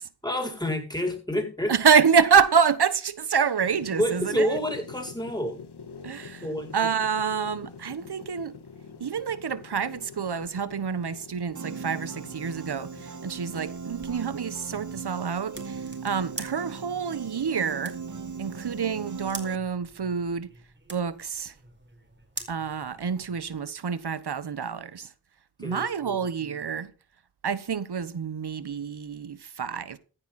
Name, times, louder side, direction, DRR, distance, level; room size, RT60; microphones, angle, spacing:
voice 1, 0.2-1.7 3.9-5.6 6.4-6.7 25.6-26.2, equal, 10° left, 7.8 m, -28 dB
voice 2, 1.7-4.6 6.0-6.4 6.7-8.5 9.0-18.0 18.4-20.5 20.9-21.5 22.5-25.1 25.6-26.9 27.4-30.0, right 6 dB, 80° right, 1.3 m, -27 dB
sound 1, 3.6-13.6, left 6 dB, 90° left, 1.6 m, -46 dB
Piano, 11.6-19.6, right 5 dB, 50° right, 1.2 m, -38 dB
sound 2, 13.3-23.6, right 2 dB, 30° right, 4.6 m, -46 dB
16.0 x 9.7 x 4.3 m
cardioid pair, 45°, 39 cm